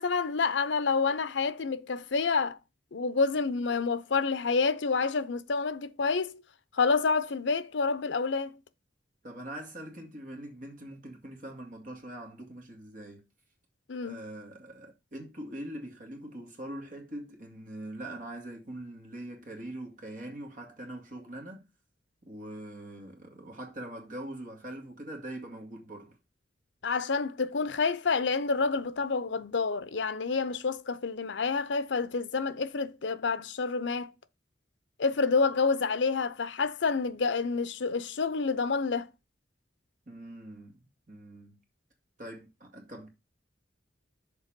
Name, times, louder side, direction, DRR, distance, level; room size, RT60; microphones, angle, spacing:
voice 1, 0.0-2.6 2.9-6.4 6.7-8.5 13.9-14.2 26.8-34.1 35.0-39.1, left 4 dB, 80° left, 0.7 m, -28 dB
voice 2, 9.2-13.3 14.0-21.6 22.2-26.2 40.1-41.6 42.2-43.1, right 1 dB, 45° right, 2.1 m, -43 dB
6.9 x 4.6 x 5.2 m
head